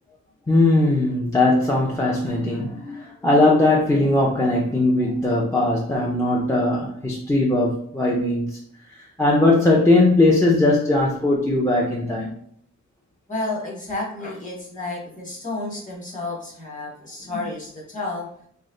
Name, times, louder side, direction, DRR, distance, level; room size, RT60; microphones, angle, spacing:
voice 1, 0.5-8.6 9.2-12.3, left 2 dB, 10° left, 0.4 m, -19 dB
voice 2, 13.3-18.3, left 2 dB, 25° left, 1.0 m, -31 dB
3.1 x 2.0 x 3.7 m
wide cardioid pair, 160°, 29 cm